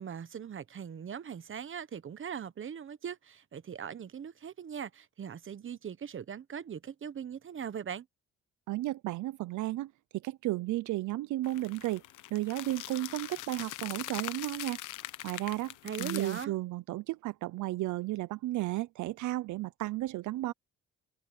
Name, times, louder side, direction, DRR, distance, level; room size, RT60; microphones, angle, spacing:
voice 1, 0.0-8.1 15.8-16.5, right 8 dB, 40° right, 1.1 m, -40 dB
voice 2, 8.7-9.9 10.2-12.0 12.3-14.8 15.2-20.5, right 16 dB, 75° right, 0.6 m, -33 dB
sound 1, 11.4-16.4, left 15 dB, 90° left, 1.0 m, -42 dB
cardioid pair, 90°, 30 cm